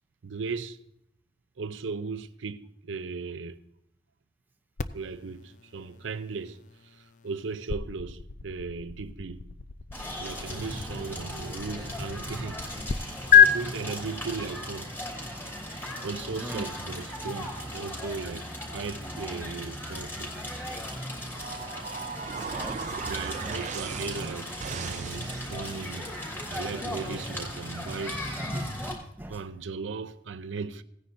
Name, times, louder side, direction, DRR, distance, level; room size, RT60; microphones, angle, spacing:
voice 1, 0.2-0.8 1.6-3.6 4.9-6.6 7.2-9.4 10.2-12.6 13.3-14.9 16.0-20.3 23.1-26.1 26.5-28.2 29.3-30.8, right 4 dB, 85° right, 0.6 m, -37 dB
sound 1, 4.8-13.0 13.3-13.5, left 8 dB, 40° left, 0.4 m, -27 dB
Crackle, 9.9-28.9, equal, 10° left, 3.4 m, -37 dB
voice 2, 16.4-16.7 21.9-23.0 23.4-23.7 29.2-29.4, right 1 dB, 10° right, 0.7 m, -42 dB
sound 2, 21.3-25.9, right 5 dB, 40° right, 0.4 m, -37 dB
17.0 x 9.7 x 2.6 m
head